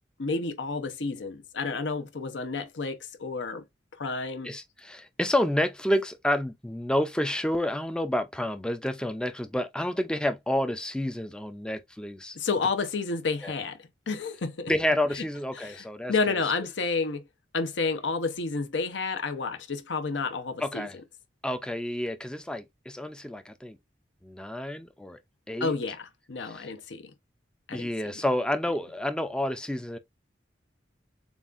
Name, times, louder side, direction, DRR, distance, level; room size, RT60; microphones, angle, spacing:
voice 1, 0.2-3.6 4.0-4.5 12.3-13.8 14.1-14.7 15.1-15.2 15.6-17.2 17.5-20.9 25.6-27.1 27.7-27.9, left 4 dB, 75° left, 0.8 m, -30 dB
voice 2, 4.4-12.4 13.4-13.5 14.7-16.4 20.6-21.0 21.4-23.8 24.2-25.2 25.5-25.7 26.4-26.7 27.7-30.0, left 1 dB, 5° left, 0.3 m, -29 dB
7.0 x 2.4 x 2.4 m
head